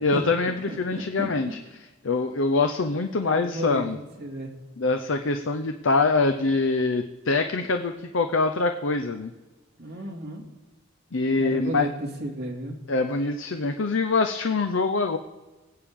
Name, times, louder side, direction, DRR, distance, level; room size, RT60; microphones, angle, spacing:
voice 1, 0.0-1.6 2.0-4.0 4.8-9.3 11.1-11.9 12.9-15.2, left 3 dB, 70° left, 7 dB, 0.7 m, -24 dB
voice 2, 0.7-1.3 3.2-4.5 9.8-10.4 11.4-12.7, right 1 dB, 55° right, -1 dB, 2.4 m, -33 dB
24.0 x 8.7 x 3.7 m, 1.2 s
head